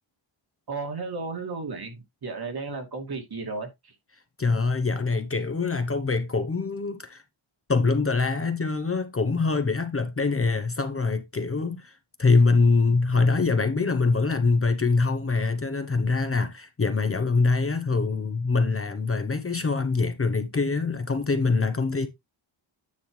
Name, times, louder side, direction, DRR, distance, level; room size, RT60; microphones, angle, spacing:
voice 1, 0.7-4.0, right 4 dB, 50° right, 2.4 m, -34 dB
voice 2, 4.4-7.2 7.7-22.1, left 4 dB, 30° left, 0.9 m, -24 dB
9.6 x 5.6 x 3.2 m
wide cardioid pair, 140°, 48 cm